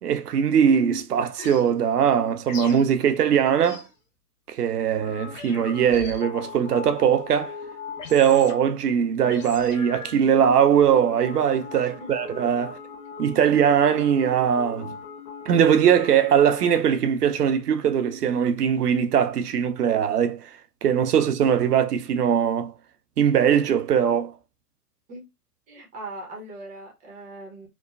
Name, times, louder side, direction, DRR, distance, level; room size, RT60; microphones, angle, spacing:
voice 1, 0.0-3.8 4.5-7.5 8.1-12.8 13.2-14.9 15.5-22.7 23.2-24.3, right 8 dB, 75° right, 0.6 m, -21 dB
sound 1, 1.4-1.7 2.5-2.8 3.6-3.9 5.0-8.8 9.2-10.3 11.0-16.8, left 5 dB, 55° left, 1.1 m, -39 dB
voice 2, 25.7-27.7, right 2 dB, 15° right, 0.7 m, -40 dB
3.0 x 2.1 x 2.3 m
figure-of-eight pair, 115°, 47 cm